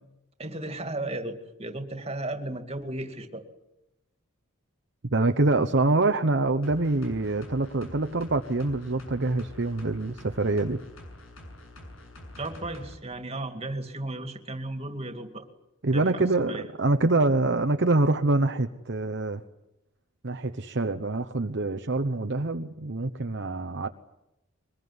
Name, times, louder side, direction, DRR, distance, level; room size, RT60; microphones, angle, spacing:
voice 1, 0.4-3.4 12.4-15.5 15.9-16.6, right 2 dB, 30° right, 6 dB, 2.4 m, -35 dB
voice 2, 5.1-10.8 15.8-19.4 20.2-23.9, right 2 dB, 55° right, 7 dB, 1.0 m, -25 dB
sound 1, 6.6-13.0 13.3-13.4, left 1 dB, 90° left, 7.0 m, -46 dB
23.5 x 20.5 x 9.6 m, 0.91 s
head